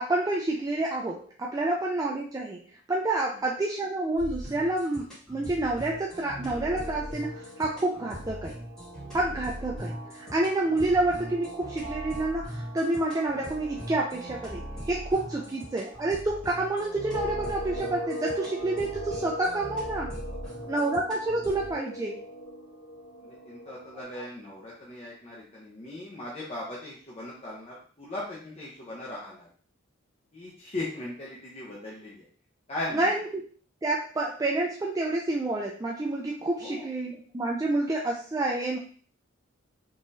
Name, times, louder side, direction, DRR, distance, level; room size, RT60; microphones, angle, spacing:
voice 1, 0.0-2.6 2.9-8.6 9.1-20.1 20.7-22.2 23.7-23.8 24.1-24.2 32.9-33.4 33.8-38.8, right 2 dB, 15° right, -2 dB, 0.3 m, -28 dB
sound 1, 4.2-21.7, equal, 5° left, 1.5 m, -41 dB
sound 2, 6.4-24.0, right 1 dB, 80° left, 1.5 m, -41 dB
voice 2, 23.2-29.5 30.3-32.2 32.7-33.1 36.6-36.9, left 1 dB, 30° left, -6 dB, 0.8 m, -38 dB
3.8 x 2.9 x 2.6 m, 0.44 s
head